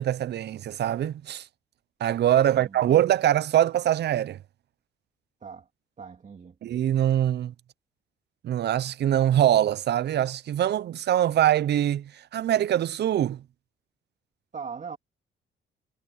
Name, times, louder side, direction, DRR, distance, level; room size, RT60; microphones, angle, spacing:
voice 1, 0.0-1.4 2.0-4.4 6.6-7.5 8.4-13.4, right 11 dB, 60° right, 0.6 m, -23 dB
voice 2, 2.5-2.8 5.4-5.7 6.0-6.6 14.5-15.0, right 6 dB, 40° right, 2.3 m, -40 dB
cardioid pair, 90°, 20 cm